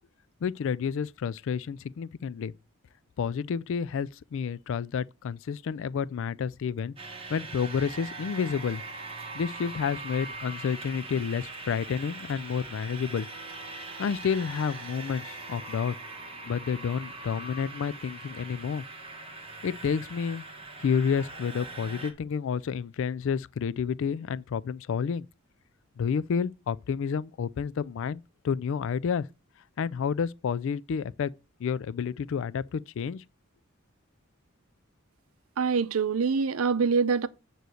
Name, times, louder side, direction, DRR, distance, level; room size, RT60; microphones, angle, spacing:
voice 1, 0.4-2.5 3.2-6.9 7.3-8.8 9.3-13.3 14.0-16.0 16.4-18.8 19.6-20.5 20.8-25.3 26.0-29.3 29.8-31.3 31.6-33.2, left 6 dB, 65° left, 0.3 m, -30 dB
sound 1, 7.0-22.1, right 3 dB, 30° right, 1.6 m, -41 dB
voice 2, 35.6-37.3, right 5 dB, 85° right, 0.6 m, -25 dB
9.2 x 3.2 x 6.3 m
head